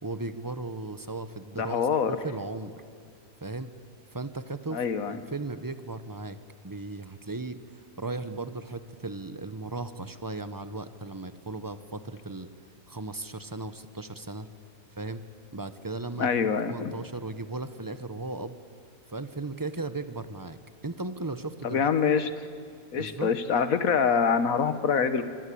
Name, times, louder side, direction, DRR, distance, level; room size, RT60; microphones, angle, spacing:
voice 1, 0.0-2.8 3.4-3.7 4.1-4.9 5.1-6.4 6.6-12.5 12.9-14.5 15.0-15.2 15.5-16.3 16.7-18.6 19.1-20.6 20.8-21.9 22.9-23.3, right 2 dB, 15° right, 11 dB, 0.8 m, -36 dB
voice 2, 1.6-2.2 4.7-5.2 16.2-16.9 21.6-22.3 22.9-25.2, left 6 dB, 65° left, 11 dB, 1.5 m, -25 dB
25.5 x 25.5 x 8.6 m, 2.3 s
omnidirectional pair, 1.6 m